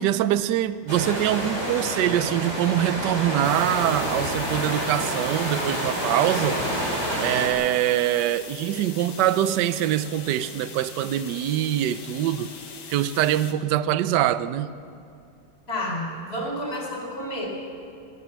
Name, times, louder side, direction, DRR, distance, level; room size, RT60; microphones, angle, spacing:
voice 1, 0.0-6.6 7.2-12.5 12.9-14.7, right 12 dB, 70° right, 1.1 m, -24 dB
sound 1, 0.9-7.5, right 1 dB, 30° right, 4.8 m, -28 dB
sound 2, 3.4-13.5, left 5 dB, 70° left, 2.3 m, -41 dB
voice 2, 15.7-17.5, left 1 dB, 25° left, 4.6 m, -30 dB
29.5 x 12.5 x 7.4 m
omnidirectional pair, 2.3 m